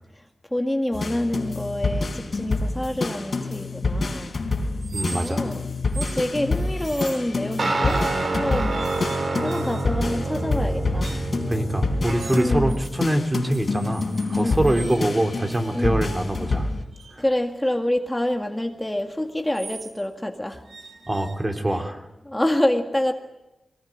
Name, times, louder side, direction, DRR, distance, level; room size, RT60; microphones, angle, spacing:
voice 1, 0.5-4.4 5.1-5.7 5.9-8.9 9.4-11.2 12.3-12.8 14.4-14.8 15.7-16.0 17.2-20.6 21.7-21.8 22.3-23.1, left 1 dB, 15° left, 4 dB, 1.9 m, -27 dB
sound 1, 0.9-16.8, left 3 dB, 60° left, 4.0 m, -27 dB
sound 2, 4.8-5.5 5.9-6.2 6.8-7.3 7.8-8.3 8.7-10.1 11.0-11.4 12.2-12.9 13.3-15.0 15.6-20.0 20.6-21.8, right 4 dB, 85° right, 2.2 m, -42 dB
voice 2, 4.9-5.5 11.5-16.7 21.1-22.0, right 1 dB, 25° right, 4 dB, 3.2 m, -24 dB
sound 3, 7.6-12.7, right 3 dB, 60° right, 3.4 m, -28 dB
22.5 x 20.0 x 9.3 m, 0.96 s
cardioid pair, 60°, 0 cm